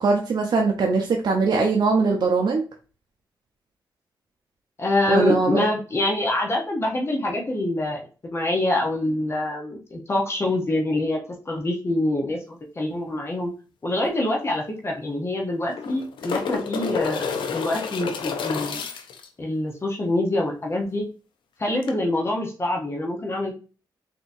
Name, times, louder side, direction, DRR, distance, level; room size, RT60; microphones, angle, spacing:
voice 1, 0.0-2.6 5.1-5.7, right 4 dB, 60° right, 1 dB, 0.6 m, -21 dB
voice 2, 4.8-8.0 8.3-11.2 11.5-13.5 13.8-18.8 19.4-21.1 21.6-23.5, left 1 dB, 30° left, 0 dB, 0.8 m, -25 dB
sound 1, 14.1-14.2 14.4-14.5 15.5-19.3 21.8-21.9, left 5 dB, 75° left, 0.5 m, -29 dB
3.9 x 2.8 x 2.6 m, 0.35 s
cardioid pair, 85°, 8 cm